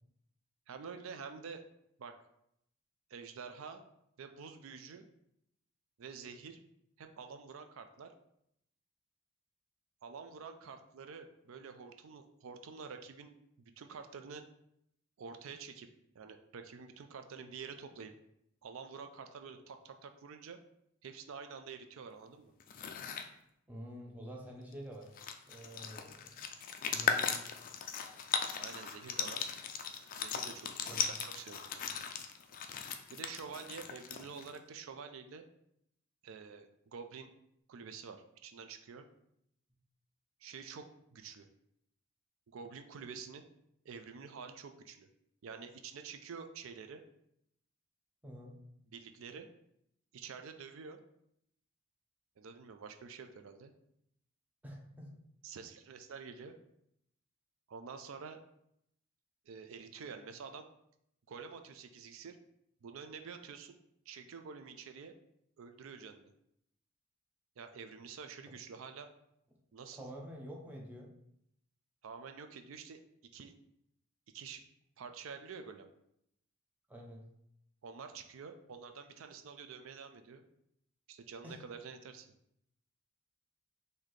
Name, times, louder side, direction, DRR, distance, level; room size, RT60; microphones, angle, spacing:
voice 1, 0.7-1.6 2.0-2.2 3.1-3.9 4.2-5.0 6.0-6.6 7.0-8.1 10.0-14.4 15.2-15.9 16.1-18.1 18.6-20.6 21.0-22.5 28.6-29.5 30.1-31.9 33.1-35.4 36.2-37.3 37.7-39.1 40.4-41.5 42.5-43.4 43.8-45.1 45.4-47.0 48.9-49.5 50.1-51.0 52.4-53.7 55.4-56.5 57.7-58.4 59.5-60.7 61.3-62.4 62.8-63.8 64.1-65.1 65.6-66.3 67.6-69.1 69.7-70.1 72.0-73.0 73.3-73.5 74.3-74.6 75.0-75.9 77.8-80.4 81.1-82.3, right 5 dB, 65° right, 8 dB, 0.4 m, -48 dB
sound 1, 22.6-23.3 24.7-24.8 25.0-34.6, left 7 dB, 40° left, 0.3 m, -38 dB
voice 2, 23.7-25.1 25.4-26.4 26.9-27.4 30.9-31.2 48.2-48.6 54.6-55.2 69.9-71.1 76.9-77.2 81.4-81.6, equal, 10° right, -1 dB, 0.6 m, -48 dB
3.9 x 2.7 x 3.1 m, 0.76 s
head